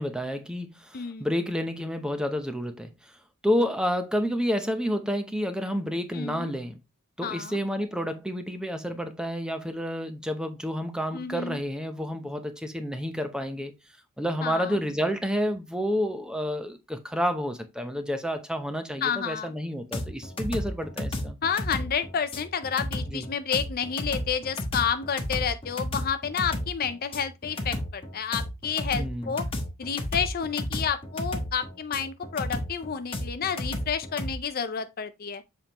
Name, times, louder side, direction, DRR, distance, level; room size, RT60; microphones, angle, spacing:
voice 1, 0.0-3.2 3.4-6.8 7.2-13.7 14.2-21.4 23.1-23.3 29.0-29.3, equal, 5° right, 0.7 m, -30 dB
voice 2, 0.9-1.3 6.1-6.5 7.2-7.6 11.1-11.6 14.4-14.8 19.0-19.5 21.4-29.5 29.8-35.4, left 7 dB, 40° left, 0.5 m, -30 dB
sound 1, 19.9-34.3, left 1 dB, 25° left, 1.1 m, -33 dB
7.3 x 4.4 x 2.9 m
head